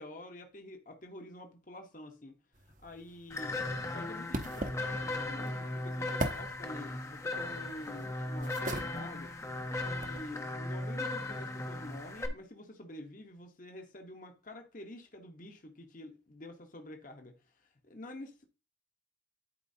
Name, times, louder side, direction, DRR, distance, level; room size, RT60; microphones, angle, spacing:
voice 1, 0.0-2.4 2.8-3.6 3.9-9.3 9.8-17.3 17.6-18.5, left 1 dB, 45° left, 1.0 m, -48 dB
sound 1, 2.5-10.2, right 1 dB, 40° right, 0.9 m, -42 dB
sound 2, 3.3-12.3, left 2 dB, 15° left, 0.7 m, -37 dB
11.5 x 4.6 x 2.7 m
head